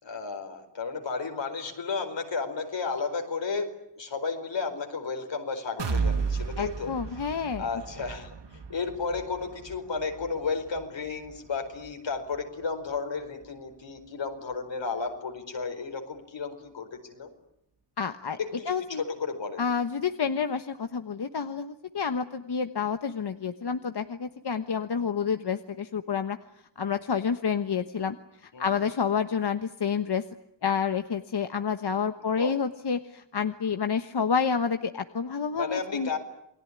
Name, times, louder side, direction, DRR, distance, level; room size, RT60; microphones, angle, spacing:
voice 1, 0.0-7.0 7.6-17.3 18.4-19.6 28.5-28.7 32.2-32.5 35.5-36.2, left 4 dB, 85° left, 5 dB, 4.8 m, -33 dB
sound 1, 5.8-13.6 14.0-14.1 14.5-14.6, right 5 dB, 70° right, 2.0 m, -35 dB
voice 2, 6.6-7.7 18.0-18.4 18.7-19.0 19.6-26.4 26.8-28.2 28.4-30.2 30.6-36.2, left 6 dB, 65° left, 8 dB, 1.3 m, -29 dB
28.5 x 20.5 x 9.8 m, 0.79 s
wide cardioid pair, 75°, 43 cm